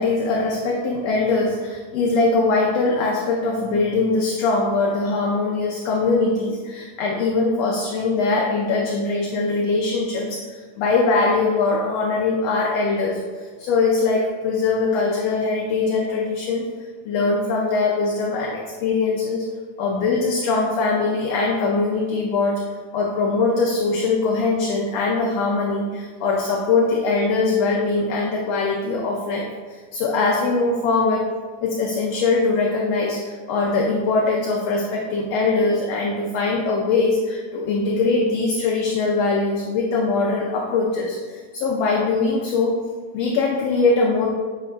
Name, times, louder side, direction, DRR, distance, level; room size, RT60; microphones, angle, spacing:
voice 1, 0.0-13.1 13.6-16.6 17.0-19.5 19.8-22.6 22.9-31.3 31.6-42.7 43.1-44.3, left 3 dB, 75° left, -1 dB, 1.6 m, -22 dB
7.9 x 5.3 x 2.5 m, 1.5 s
omnidirectional pair, 3.3 m